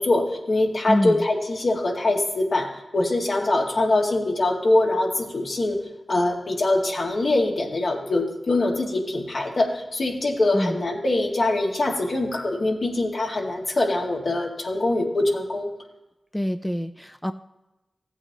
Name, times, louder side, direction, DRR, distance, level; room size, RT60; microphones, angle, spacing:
voice 1, 0.0-5.8 6.1-15.7, left 2 dB, 70° left, -1 dB, 1.8 m, -23 dB
voice 2, 0.9-1.3 10.5-10.8 16.3-17.3, left 1 dB, 10° left, 9 dB, 0.5 m, -25 dB
15.0 x 8.2 x 2.8 m, 1.0 s
cardioid pair, 40°, 0 cm